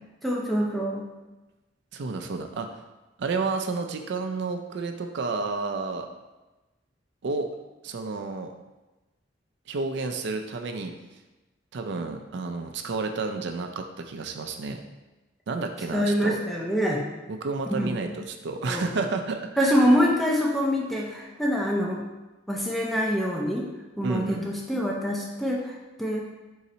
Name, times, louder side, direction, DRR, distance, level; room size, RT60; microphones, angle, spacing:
voice 1, 0.2-1.1 15.9-17.1 17.7-17.9 18.7-18.8 19.6-22.0 22.5-23.7 24.0-26.3, equal, ahead, -2 dB, 0.4 m, -25 dB
voice 2, 1.9-2.7 3.2-6.1 7.2-7.5 7.8-8.5 9.7-10.9 11.7-14.8 15.5-16.4 17.3-19.9 24.0-24.5, right 3 dB, 65° right, 5 dB, 0.4 m, -30 dB
3.9 x 2.7 x 4.2 m, 1.1 s
head